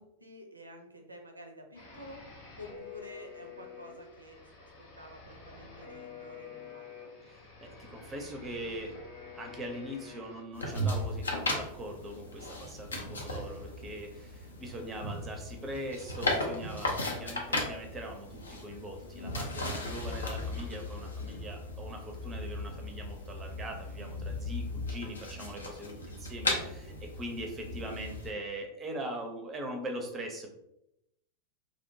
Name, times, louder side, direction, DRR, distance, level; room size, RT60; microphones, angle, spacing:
voice 1, 0.0-2.3 2.6-4.7 5.0-7.1 26.1-26.4, left 1 dB, 80° right, 3 dB, 0.4 m, -50 dB
sound 1, 1.7-10.4, left 5 dB, 50° left, 0.8 m, -49 dB
voice 2, 7.2-9.0 9.3-30.5, right 1 dB, 20° right, 3 dB, 0.5 m, -41 dB
sound 2, 10.5-28.3, left 1 dB, 75° left, 0.4 m, -36 dB
2.6 x 2.1 x 2.6 m, 0.82 s
figure-of-eight pair, 90°, 0 cm